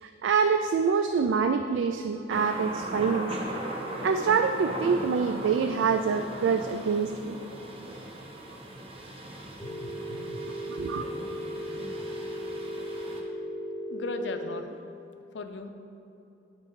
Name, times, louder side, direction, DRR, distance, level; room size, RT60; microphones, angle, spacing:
voice 1, 0.0-3.3 4.0-7.4 10.7-11.1, right 5 dB, 75° right, 7 dB, 0.3 m, -26 dB
Thunder, 2.3-13.2, right 1 dB, 30° right, 0.8 m, -38 dB
voice 2, 9.6-10.7 13.9-14.8 15.3-15.7, left 2 dB, 65° left, 7 dB, 0.5 m, -38 dB
Telephone, 9.6-14.6, equal, 20° left, 0.9 m, -36 dB
9.5 x 4.7 x 4.6 m, 2.9 s
head